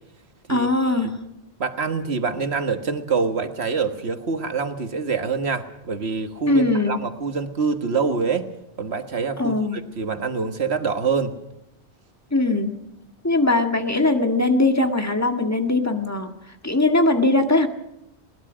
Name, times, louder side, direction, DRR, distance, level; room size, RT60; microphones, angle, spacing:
voice 1, 0.5-1.1 6.5-7.0 9.4-9.8 12.3-12.7 13.2-16.3 16.6-17.7, left 2 dB, 15° left, 5 dB, 1.8 m, -20 dB
voice 2, 1.6-8.5 8.8-11.3, right 5 dB, 70° right, 8 dB, 1.8 m, -25 dB
21.5 x 20.0 x 6.2 m, 0.87 s
omnidirectional pair, 1.1 m